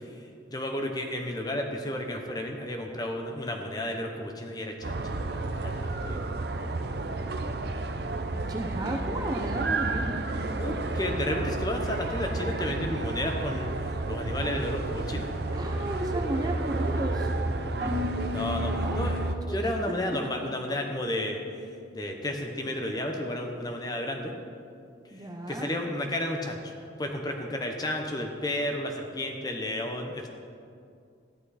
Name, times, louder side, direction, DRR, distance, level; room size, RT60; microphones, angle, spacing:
voice 1, 0.5-6.3 10.6-13.7 14.1-15.3 18.3-19.2 19.5-21.4 21.9-24.3 25.5-26.7 27.0-30.3, left 1 dB, 20° left, 3 dB, 1.0 m, -32 dB
sound 1, 4.8-19.3, right 2 dB, 60° right, 0.7 m, -31 dB
voice 2, 8.3-10.2 15.5-17.3 18.6-19.0 19.3-19.7 20.2-20.3 25.1-25.7, right 1 dB, 20° right, 2 dB, 0.8 m, -34 dB
Harp, 17.8-21.9 22.2-22.8 23.3-23.6, left 3 dB, 40° right, 3.1 m, -39 dB
14.0 x 10.5 x 4.2 m, 2.4 s
head